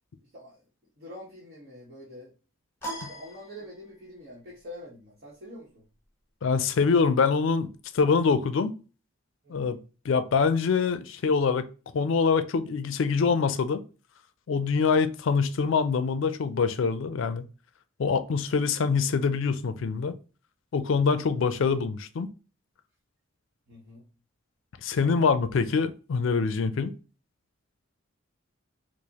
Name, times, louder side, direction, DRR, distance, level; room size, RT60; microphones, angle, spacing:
voice 1, 1.0-2.3 3.1-5.9 9.4-9.8 23.7-24.0 25.0-25.3, left 1 dB, 50° right, 1.0 m, -45 dB
sound 1, 2.8-4.2, right 1 dB, 10° left, 1.1 m, -39 dB
voice 2, 6.4-7.7 7.9-8.7 9.5-9.8 10.0-11.7 11.9-13.8 14.5-17.4 18.0-20.1 20.7-22.3 24.8-26.9, left 5 dB, 65° left, 0.4 m, -24 dB
4.9 x 2.0 x 2.8 m
head